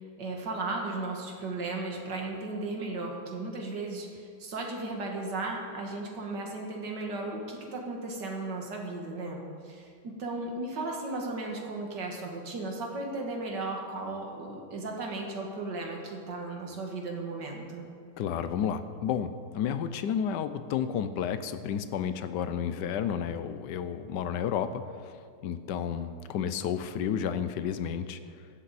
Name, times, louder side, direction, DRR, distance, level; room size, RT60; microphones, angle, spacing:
voice 1, 0.2-17.9, right 2 dB, 90° right, 1 dB, 2.3 m, -35 dB
voice 2, 18.2-25.1 25.4-28.2, left 8 dB, 85° left, 11 dB, 1.3 m, -31 dB
16.0 x 11.5 x 4.2 m, 2.2 s
omnidirectional pair, 1.8 m